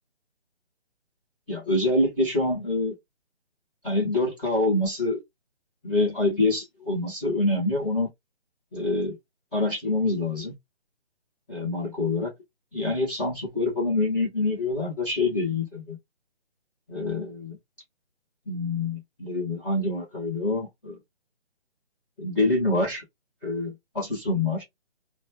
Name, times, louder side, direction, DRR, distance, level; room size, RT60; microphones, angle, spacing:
voice 1, 1.5-2.9 3.8-5.2 5.8-8.1 8.7-9.2 9.5-10.5 11.5-12.3 12.7-16.0 16.9-17.6 18.5-21.0 22.2-23.0 23.4-24.6, left 2 dB, 10° left, 0.8 m, -26 dB
3.0 x 2.3 x 2.6 m
figure-of-eight pair, 160°, 34 cm